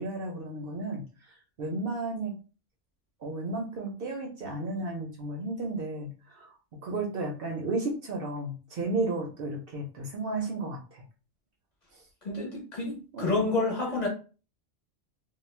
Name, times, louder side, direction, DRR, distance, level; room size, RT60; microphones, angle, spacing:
voice 1, 0.0-2.3 3.2-6.5 6.8-11.0 11.9-12.1 13.1-13.5, right 2 dB, 60° right, 1 dB, 0.7 m, -33 dB
voice 2, 12.2-14.1, left 2 dB, 45° left, -2 dB, 0.7 m, -29 dB
2.3 x 2.0 x 3.1 m, 0.35 s
omnidirectional pair, 1.2 m